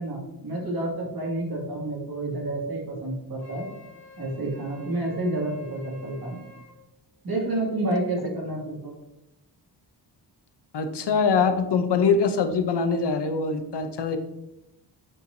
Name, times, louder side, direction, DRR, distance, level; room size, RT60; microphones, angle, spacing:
voice 1, 0.0-3.7 4.2-6.4 7.2-8.9, right 2 dB, 55° right, -3 dB, 2.2 m, -29 dB
Wind instrument woodwind instrument, 3.4-6.8, right 1 dB, 5° left, 2.0 m, -50 dB
voice 2, 10.7-14.2, left 5 dB, 70° left, 8 dB, 0.8 m, -23 dB
8.6 x 4.7 x 2.7 m, 0.92 s
wide cardioid pair, 130°, 43 cm